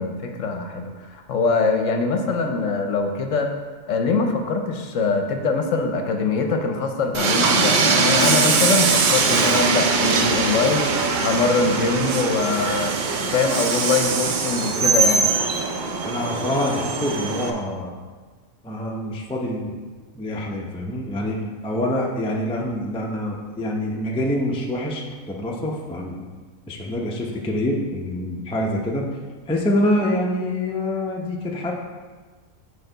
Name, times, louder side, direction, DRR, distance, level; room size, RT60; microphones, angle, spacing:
voice 1, 0.0-3.5 3.9-13.0 13.2-15.3, left 4 dB, 70° left, 4 dB, 1.0 m, -23 dB
Train, 7.1-17.5, right 4 dB, 55° right, 0.5 m, -21 dB
voice 2, 16.0-17.9 18.6-19.8 20.1-26.2 26.7-29.1 29.5-31.7, left 1 dB, 5° left, -1 dB, 0.4 m, -26 dB
6.6 x 5.2 x 3.9 m, 1.4 s
omnidirectional pair, 1.4 m